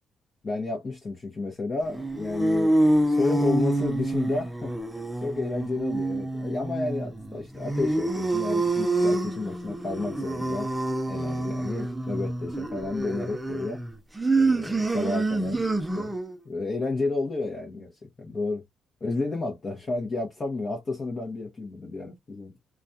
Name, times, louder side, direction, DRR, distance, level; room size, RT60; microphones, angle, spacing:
voice 1, 0.4-2.8 3.0-10.7 11.1-13.8 14.3-15.7 16.0-16.1 16.4-18.6 19.0-22.6, left 3 dB, 35° left, 0.7 m, -31 dB
sound 1, 1.9-16.4, right 2 dB, 10° right, 0.5 m, -27 dB
2.3 x 2.2 x 2.6 m
cardioid pair, 90°, 0 cm